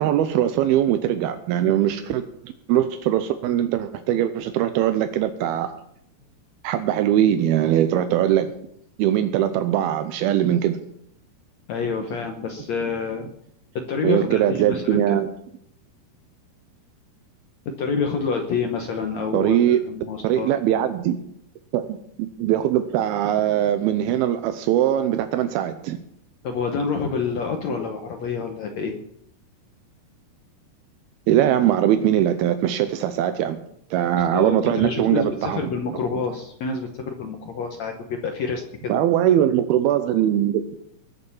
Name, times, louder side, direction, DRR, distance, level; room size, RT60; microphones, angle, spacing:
voice 1, 0.0-2.2 2.7-5.7 6.6-8.5 9.0-10.8 14.0-15.3 19.3-19.8 20.2-21.2 21.7-21.9 22.2-26.0 31.3-33.6 33.9-35.7 38.9-40.6, right 11 dB, 85° right, 9 dB, 2.6 m, -21 dB
voice 2, 11.7-13.3 13.8-15.2 17.7-20.5 26.4-29.0 34.2-38.9, left 5 dB, 65° left, 4 dB, 1.8 m, -28 dB
20.5 x 6.9 x 7.2 m, 0.71 s
omnidirectional pair, 4.5 m